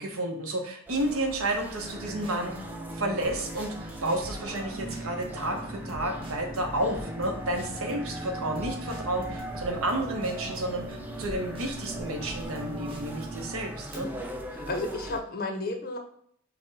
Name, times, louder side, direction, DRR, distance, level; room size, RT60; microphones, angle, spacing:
voice 1, 0.0-2.6 2.9-14.1, right 1 dB, 70° right, 3 dB, 0.8 m, -31 dB
sound 1, 0.9-15.2, right 1 dB, 10° right, 0.3 m, -41 dB
sound 2, 1.8-13.5, right 1 dB, 25° right, 0.7 m, -42 dB
Brass instrument, 4.7-14.0, right 2 dB, 40° right, 1.6 m, -43 dB
voice 2, 14.5-16.0, left 2 dB, 40° left, 4 dB, 0.6 m, -32 dB
5.7 x 2.1 x 3.9 m, 0.64 s
head